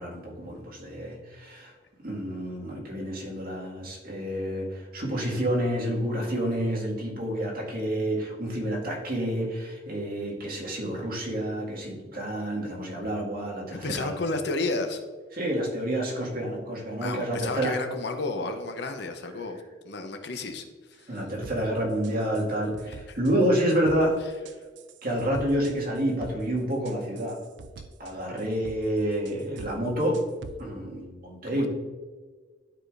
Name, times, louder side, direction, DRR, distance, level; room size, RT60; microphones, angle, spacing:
voice 1, 0.0-1.7 2.0-14.2 15.3-17.7 21.1-24.2 25.0-27.4 28.0-30.2 30.6-31.7, right 1 dB, 55° right, -4 dB, 2.1 m, -29 dB
voice 2, 13.7-15.0 17.0-20.6 20.9-21.2 22.9-23.2 31.5-31.7, left 3 dB, 65° left, 6 dB, 0.8 m, -32 dB
sound 1, 21.4-21.6 22.0-22.4 22.7-23.3 23.7-24.0 24.5-26.4 26.7-28.8 29.3-29.8 30.0-30.6, right 4 dB, 70° right, 0.4 m, -44 dB
12.0 x 4.9 x 2.6 m, 1.5 s
head